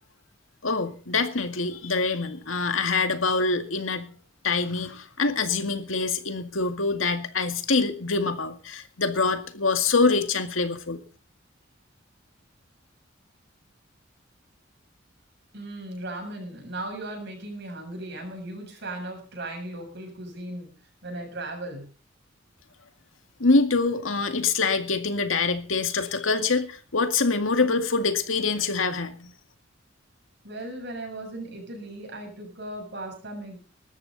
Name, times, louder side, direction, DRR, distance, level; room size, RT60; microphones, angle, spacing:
voice 1, 0.6-4.1 4.4-11.0 23.4-29.3, left 4 dB, 85° left, 7 dB, 2.1 m, -25 dB
voice 2, 15.5-20.7 21.0-21.9 30.4-33.6, right 1 dB, 60° right, 3 dB, 7.6 m, -37 dB
19.5 x 13.5 x 4.1 m, 0.38 s
head